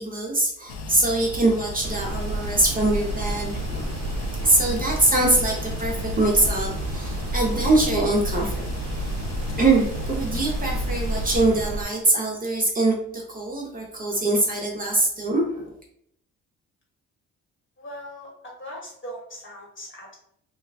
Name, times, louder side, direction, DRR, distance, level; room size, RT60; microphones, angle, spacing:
voice 1, 0.0-3.9 4.4-8.5 9.6-15.7, right 2 dB, 30° right, -1 dB, 0.7 m, -23 dB
sound 1, 0.7-11.5, left 2 dB, 60° left, 0.5 m, -34 dB
sound 2, 1.8-11.8, right 2 dB, 65° right, 0.5 m, -31 dB
voice 2, 17.8-18.3 18.6-20.1, equal, 40° left, -3 dB, 1.4 m, -39 dB
2.4 x 2.2 x 3.3 m, 0.70 s
cardioid pair, 90°, 30 cm